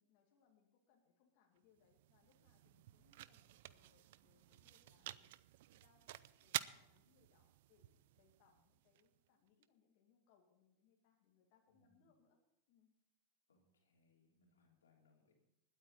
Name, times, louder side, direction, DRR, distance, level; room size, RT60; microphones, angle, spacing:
voice 1, 0.0-5.4 5.7-12.4 12.7-12.9, left 6 dB, 55° left, 0 dB, 2.3 m, -75 dB
sound 1, 1.6-9.6, right 15 dB, 65° right, 0.5 m, -51 dB
voice 2, 11.7-12.2 13.5-15.3, left 3 dB, 85° left, 0 dB, 3.4 m, -75 dB
20.5 x 8.9 x 4.1 m, 0.85 s
hypercardioid pair, 105°, 0 cm